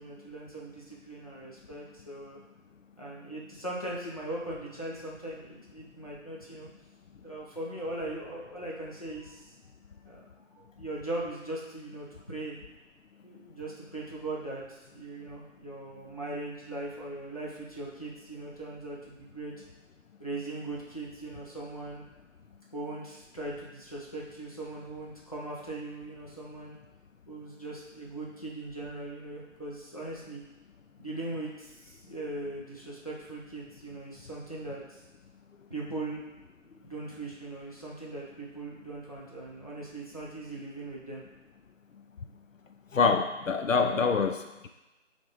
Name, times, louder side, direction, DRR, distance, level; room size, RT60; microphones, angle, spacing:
voice 1, 0.0-2.4 3.0-6.7 7.2-9.5 10.0-10.2 10.5-12.6 13.2-19.5 20.2-22.0 22.7-26.8 27.3-30.4 31.0-35.0 35.7-41.2, right 2 dB, 30° left, -5 dB, 0.9 m, -39 dB
voice 2, 42.9-44.7, left 5 dB, 75° left, 6 dB, 0.6 m, -26 dB
7.0 x 3.5 x 4.0 m, 1.0 s
figure-of-eight pair, 175°, 39 cm